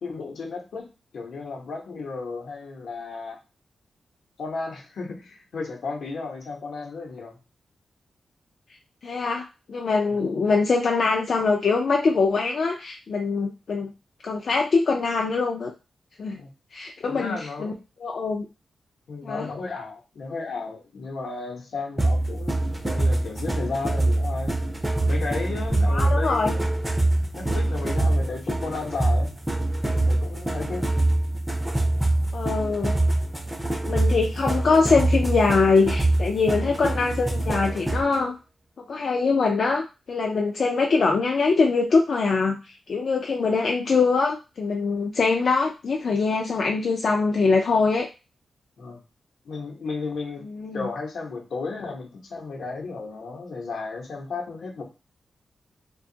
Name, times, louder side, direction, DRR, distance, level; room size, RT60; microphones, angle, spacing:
voice 1, 0.0-0.9 1.1-3.4 4.4-7.4 16.4-16.5 17.1-17.8 19.1-24.6 25.0-26.6 27.3-29.3 29.9-30.9 48.8-49.0 49.4-50.4 50.7-54.8, left 4 dB, 80° left, 1 dB, 0.7 m, -34 dB
voice 2, 9.0-13.9 14.2-15.7 16.2-16.4 16.7-17.7 18.0-18.5 19.2-19.5 25.9-26.6 32.3-33.0 33.8-38.3 38.9-48.1 50.5-50.9, left 4 dB, 55° left, 0 dB, 0.3 m, -23 dB
sound 1, 22.0-38.2, right 2 dB, 5° right, 0.4 m, -24 dB
2.8 x 2.2 x 2.6 m, 0.29 s
wide cardioid pair, 130°, 0 cm